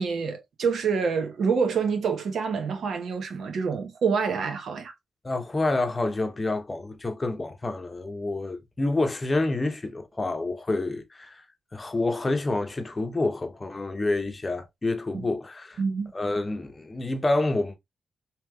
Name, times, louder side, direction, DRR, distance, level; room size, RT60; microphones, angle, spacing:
voice 1, 0.0-4.9 15.1-15.3 15.8-16.1, right 5 dB, 75° right, 0.9 m, -27 dB
voice 2, 5.2-11.4 11.7-15.8 16.1-17.8, left 2 dB, 30° left, 0.7 m, -28 dB
3.2 x 2.9 x 2.2 m
cardioid pair, 75°, 0 cm